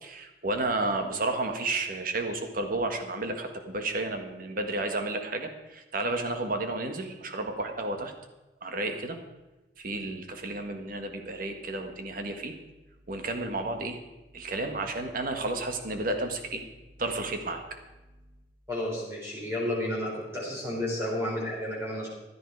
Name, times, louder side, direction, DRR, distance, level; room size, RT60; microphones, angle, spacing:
voice 1, 0.0-8.1 8.6-9.2 9.8-12.5 13.1-14.0 14.3-16.6 17.0-17.6, right 2 dB, 55° right, 5 dB, 1.7 m, -32 dB
voice 2, 18.7-22.1, left 1 dB, 15° right, -5 dB, 4.2 m, -31 dB
15.5 x 11.5 x 4.8 m, 1.1 s
head